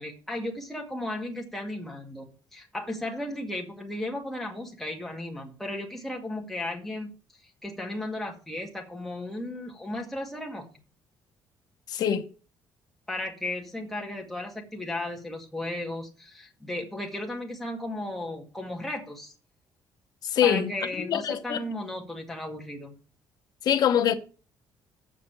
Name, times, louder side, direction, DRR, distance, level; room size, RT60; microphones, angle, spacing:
voice 1, 0.0-7.1 7.6-10.7 13.1-19.3 20.4-22.9, left 1 dB, ahead, 1.8 m, -35 dB
voice 2, 11.9-12.2 20.2-20.7 21.0-21.6 23.6-24.1, left 9 dB, 55° left, 1.0 m, -24 dB
7.6 x 6.5 x 6.5 m
cardioid pair, 160°, 8 cm